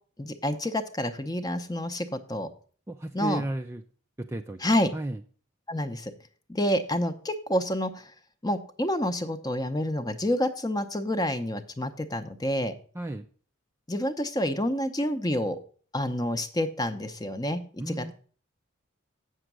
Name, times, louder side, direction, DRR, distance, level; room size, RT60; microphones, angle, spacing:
voice 1, 0.2-2.5 3.1-3.4 4.6-4.9 5.7-6.1 6.5-8.1 8.4-12.7 13.9-15.6 15.9-18.1, left 1 dB, 20° left, 9 dB, 0.7 m, -28 dB
voice 2, 2.9-3.8 4.2-4.6 4.9-5.2 12.9-13.2 17.8-18.1, right 2 dB, 10° right, 5 dB, 0.4 m, -33 dB
8.0 x 6.4 x 6.1 m, 0.44 s
head